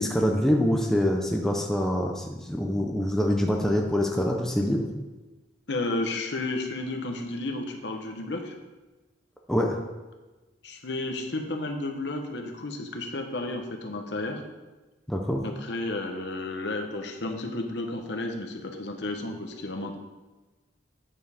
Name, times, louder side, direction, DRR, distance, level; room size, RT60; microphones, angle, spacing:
voice 1, 0.0-4.9 9.5-9.8 15.1-15.4, equal, 5° left, 0 dB, 0.7 m, -25 dB
voice 2, 5.7-8.5 10.6-14.4 15.4-19.9, left 2 dB, 65° left, 4 dB, 1.0 m, -32 dB
8.9 x 7.2 x 3.6 m, 1.2 s
head